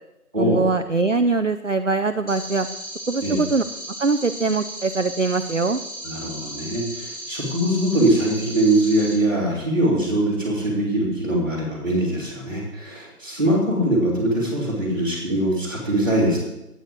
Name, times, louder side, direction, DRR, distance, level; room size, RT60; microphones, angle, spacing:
voice 1, 0.4-2.7 3.1-3.6 4.0-5.8, right 3 dB, 55° right, 8 dB, 0.5 m, -22 dB
sound 1, 2.3-9.1, right 1 dB, 35° left, 4.3 m, -35 dB
voice 2, 6.0-16.4, right 1 dB, 15° right, -10 dB, 2.8 m, -22 dB
9.2 x 9.1 x 7.5 m, 0.93 s
figure-of-eight pair, 180°, 46 cm